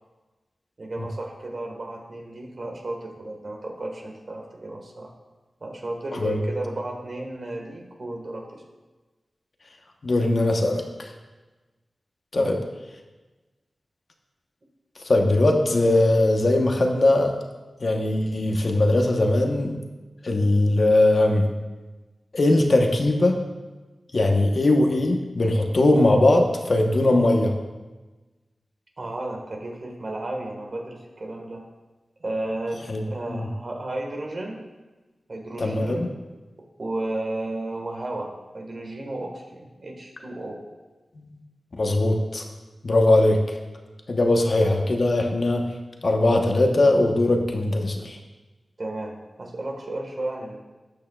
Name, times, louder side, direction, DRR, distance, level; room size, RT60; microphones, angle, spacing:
voice 1, 0.8-5.1 5.6-8.6 12.3-12.6 29.0-31.6 32.2-34.6 35.3-36.0 36.8-40.6 48.8-49.1 49.4-50.6, right 2 dB, 50° right, 1 dB, 1.5 m, -33 dB
voice 2, 6.1-6.4 10.0-11.1 12.3-12.6 15.0-17.4 17.8-19.8 20.2-21.5 22.3-23.4 24.1-27.5 32.9-33.0 33.3-33.5 35.6-36.1 41.2-41.4 41.8-42.4 42.8-43.6 44.1-45.7 46.0-48.2, left 2 dB, 55° left, 2 dB, 1.0 m, -20 dB
13.0 x 8.3 x 2.4 m, 1.2 s
wide cardioid pair, 95°, 0 cm